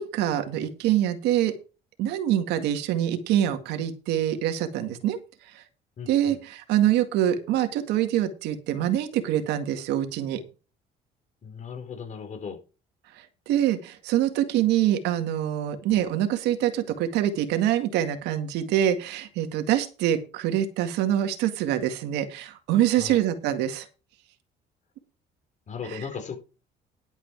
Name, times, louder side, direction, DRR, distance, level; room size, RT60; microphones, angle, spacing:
voice 1, 0.0-1.5 2.0-5.2 5.5-5.6 6.1-10.4 13.5-23.9 25.8-26.1, right 11 dB, 90° right, 2.0 m, -25 dB
voice 2, 6.0-6.4 11.4-12.6 23.0-23.2 25.7-26.4, left 6 dB, 45° left, 4.6 m, -37 dB
11.5 x 8.3 x 4.7 m
cardioid pair, 110°, 17 cm